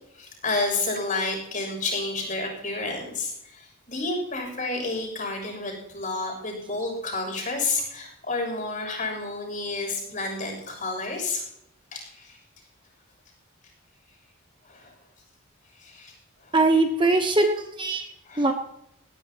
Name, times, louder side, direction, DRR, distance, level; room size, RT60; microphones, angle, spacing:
voice 1, 0.1-11.4 11.9-12.4 14.6-14.9 15.8-16.1 16.4-16.6 18.2-18.5, left 3 dB, 40° left, 1 dB, 7.1 m, -30 dB
voice 2, 16.5-18.1 18.4-18.5, right 2 dB, 20° right, 5 dB, 1.0 m, -21 dB
19.5 x 17.5 x 3.0 m, 0.77 s
head